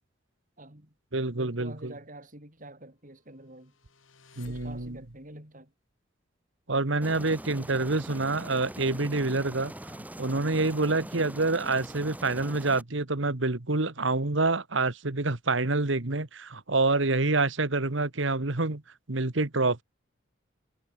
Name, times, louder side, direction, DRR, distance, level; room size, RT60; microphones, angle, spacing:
voice 1, 0.6-0.9 1.3-3.7 4.5-5.7, right 1 dB, 40° right, 5.2 m, -47 dB
voice 2, 1.1-1.9 4.4-5.0 6.7-9.7 10.2-18.8 19.1-19.8, right 3 dB, 70° right, 1.6 m, -27 dB
sound 1, 3.6-5.3, left 2 dB, 75° left, 3.7 m, -53 dB
Aircraft, 7.0-12.8, right 1 dB, 10° right, 1.4 m, -42 dB
head